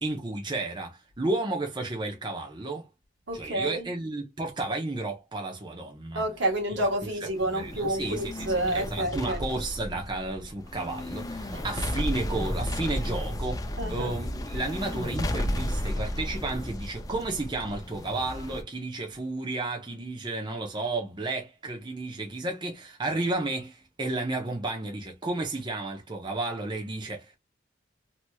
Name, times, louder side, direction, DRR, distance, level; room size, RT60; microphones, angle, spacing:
voice 1, 0.0-2.9 3.3-6.2 7.0-7.1 7.5-27.4, right 2 dB, 25° right, 0.7 m, -32 dB
voice 2, 3.3-3.9 6.1-9.4 11.5-11.6 13.8-14.1, right 1 dB, 75° right, 1.2 m, -29 dB
sound 1, 7.4-18.6, left 1 dB, 20° left, 0.4 m, -33 dB
3.0 x 2.9 x 2.2 m
head